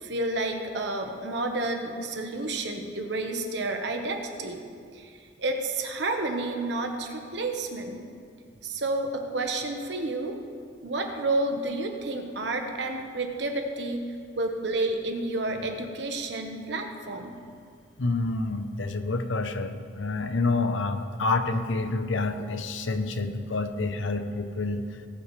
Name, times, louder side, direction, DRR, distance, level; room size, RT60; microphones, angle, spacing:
voice 1, 0.0-4.6 4.9-5.1 5.4-8.0 8.6-10.3 10.8-14.0 14.4-17.4, right 2 dB, 65° right, 4 dB, 1.2 m, -30 dB
voice 2, 18.0-25.0, left 3 dB, 80° left, 8 dB, 0.8 m, -28 dB
19.0 x 8.6 x 3.3 m, 2.2 s
head